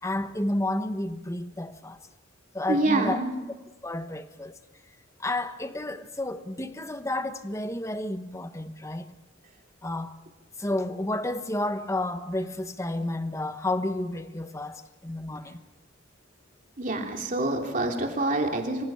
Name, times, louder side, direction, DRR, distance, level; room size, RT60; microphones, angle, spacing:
voice 1, 0.0-2.0 2.5-3.2 3.8-4.6 5.2-9.1 9.8-10.1 10.6-15.6, left 1 dB, 15° left, 1.1 m, -31 dB
voice 2, 2.7-3.3 16.8-18.8, right 2 dB, 45° right, 3.0 m, -26 dB
26.0 x 16.0 x 7.3 m
head